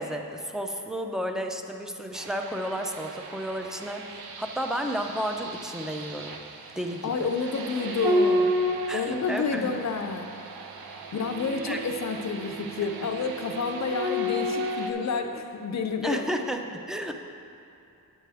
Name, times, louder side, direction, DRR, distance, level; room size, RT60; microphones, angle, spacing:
voice 1, 0.0-6.4 6.8-7.0 8.9-9.7 11.7-11.8 16.0-17.1, equal, ahead, 4 dB, 0.5 m, -32 dB
sound 1, 2.1-14.9, equal, 80° right, 0.7 m, -32 dB
voice 2, 7.0-8.5 8.9-10.3 11.1-16.3, left 5 dB, 50° left, 6 dB, 0.5 m, -29 dB
8.8 x 8.4 x 3.4 m, 2.7 s
wide cardioid pair, 100°, 36 cm